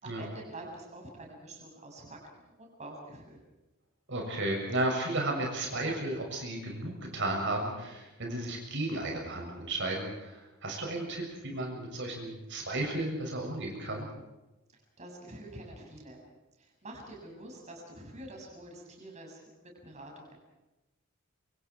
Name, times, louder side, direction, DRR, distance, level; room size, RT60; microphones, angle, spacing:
voice 1, 0.0-3.4 14.7-16.2 16.6-20.4, right 1 dB, 30° right, 0 dB, 7.1 m, -47 dB
voice 2, 4.1-14.1, right 1 dB, 55° right, 1 dB, 6.9 m, -34 dB
27.5 x 26.0 x 4.8 m, 1.0 s
head